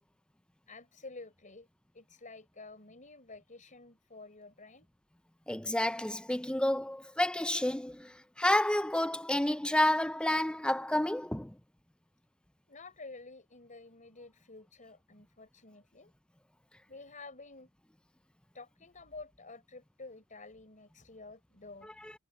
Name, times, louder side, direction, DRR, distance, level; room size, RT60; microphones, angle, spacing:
voice 1, 0.7-1.7 1.9-4.9 12.7-16.1 16.9-17.7 18.5-21.9, left 3 dB, 35° left, 5.1 m, -50 dB
voice 2, 5.5-11.5 21.8-22.1, left 1 dB, 5° left, 0.5 m, -30 dB
head